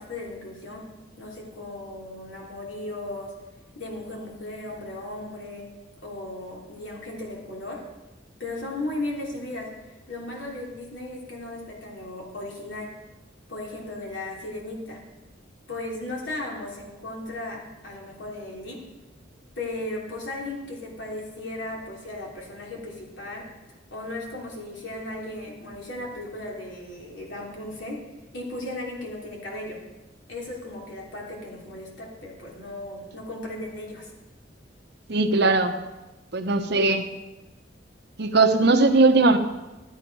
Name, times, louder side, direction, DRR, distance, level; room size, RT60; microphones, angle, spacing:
voice 1, 0.0-3.3 3.7-5.7 6.0-7.8 8.4-9.7 10.1-12.9 13.5-15.0 15.7-18.9 19.6-23.5 23.9-28.0 28.3-29.8 30.3-34.1, left 2 dB, 75° left, -2 dB, 3.2 m, -36 dB
voice 2, 35.1-35.8 36.3-37.1 38.2-39.4, right 3 dB, 60° right, 8 dB, 0.9 m, -19 dB
12.5 x 8.6 x 5.4 m, 1.1 s
head